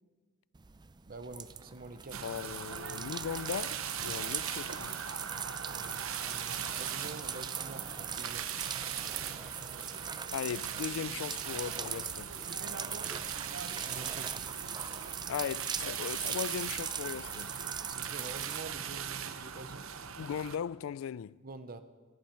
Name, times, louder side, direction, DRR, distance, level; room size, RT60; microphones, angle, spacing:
sound 1, 0.6-18.6, right 7 dB, 20° right, 0.4 m, -40 dB
voice 1, 1.1-2.3 5.6-8.5 13.8-14.5 17.8-19.8 21.4-21.8, right 3 dB, 45° right, 0.7 m, -47 dB
sound 2, 2.1-20.6, right 8 dB, 85° right, 0.8 m, -40 dB
voice 2, 2.2-5.0 10.3-12.3 15.3-17.5 20.2-21.4, left 8 dB, 85° left, 0.3 m, -38 dB
18.0 x 14.5 x 4.5 m
head